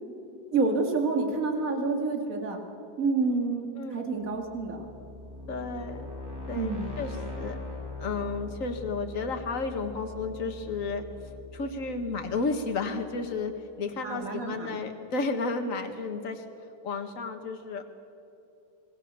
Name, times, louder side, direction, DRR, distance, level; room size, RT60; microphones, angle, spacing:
voice 1, 0.5-2.6 3.0-3.7 3.9-4.8 6.6-6.9 14.0-14.8, right 3 dB, 55° right, 2 dB, 2.7 m, -28 dB
sound 1, 4.3-13.1, left 3 dB, 10° right, 4.2 m, -41 dB
voice 2, 5.5-6.1 6.5-7.6 8.0-11.0 11.5-13.5 13.8-16.4 16.8-17.9, left 3 dB, 50° left, 5 dB, 1.9 m, -32 dB
26.0 x 20.0 x 6.9 m, 2.8 s
omnidirectional pair, 1.8 m